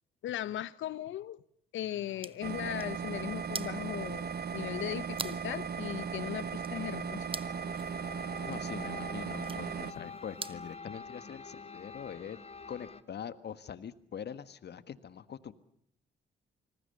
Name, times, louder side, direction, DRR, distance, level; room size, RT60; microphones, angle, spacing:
voice 1, 0.2-1.4 1.7-7.2, left 12 dB, 70° left, 1.0 m, -38 dB
sound 1, 1.9-10.8, right 4 dB, 25° right, 1.1 m, -47 dB
sound 2, 2.4-9.9, right 6 dB, 50° right, 1.3 m, -37 dB
sound 3, 4.5-13.0, left 4 dB, 30° left, 2.0 m, -49 dB
voice 2, 8.4-12.4 12.7-15.5, left 8 dB, 55° left, 1.6 m, -43 dB
27.0 x 20.0 x 6.8 m
hypercardioid pair, 55°, 21 cm